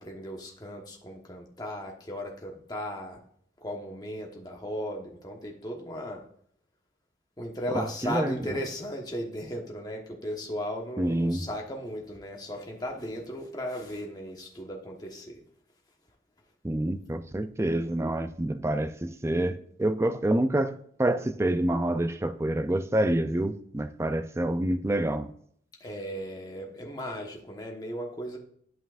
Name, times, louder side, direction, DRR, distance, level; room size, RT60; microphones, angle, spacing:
voice 1, 0.0-3.2 3.6-6.2 7.4-15.4 25.8-28.4, equal, 20° left, 1.2 m, -36 dB
voice 2, 7.7-8.4 11.0-11.5 16.6-25.3, right 1 dB, 15° right, 0.4 m, -27 dB
11.0 x 5.5 x 2.5 m
head